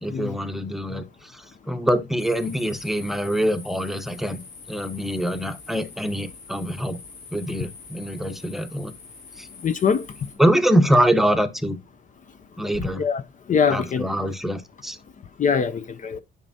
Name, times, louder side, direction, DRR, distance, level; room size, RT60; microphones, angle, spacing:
voice 1, 0.0-4.4 4.7-7.0 7.3-8.9 9.4-9.5 10.4-11.8 12.6-13.0 13.7-15.0, equal, ahead, 0.8 m, -24 dB
sound 1, 2.2-10.3, left 4 dB, 75° left, 4.2 m, -44 dB
voice 2, 9.6-10.0 13.0-13.2 13.5-14.0 15.4-16.2, left 6 dB, 40° left, 0.5 m, -22 dB
11.0 x 5.2 x 2.7 m
cardioid pair, 135°, 20 cm